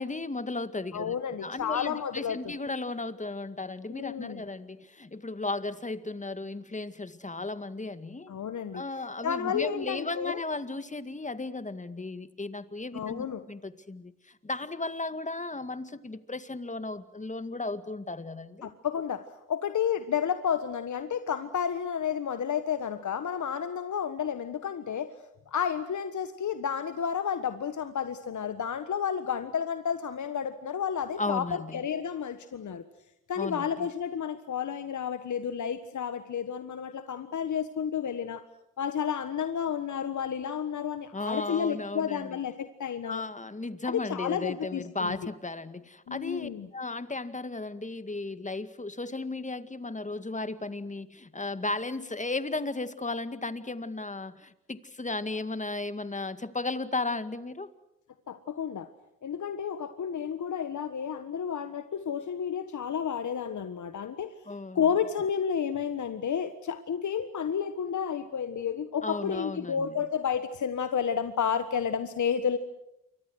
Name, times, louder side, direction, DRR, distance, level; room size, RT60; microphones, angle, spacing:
voice 1, 0.0-1.2 1.4-8.3 8.7-18.7 31.2-31.8 33.4-33.9 41.1-42.4 43.0-57.7 64.5-64.8 69.0-69.9, left 2 dB, 20° left, 12 dB, 2.1 m, -35 dB
voice 2, 0.9-2.5 3.9-4.4 8.3-8.8 9.2-10.4 12.9-13.4 18.6-25.1 25.5-32.8 33.3-38.4 38.8-43.2 43.9-45.2 46.1-46.7 58.3-58.9 59.2-64.3 64.7-72.6, left 7 dB, 55° left, 10 dB, 1.5 m, -31 dB
28.5 x 24.0 x 6.4 m, 0.88 s
supercardioid pair, 50°, 35 cm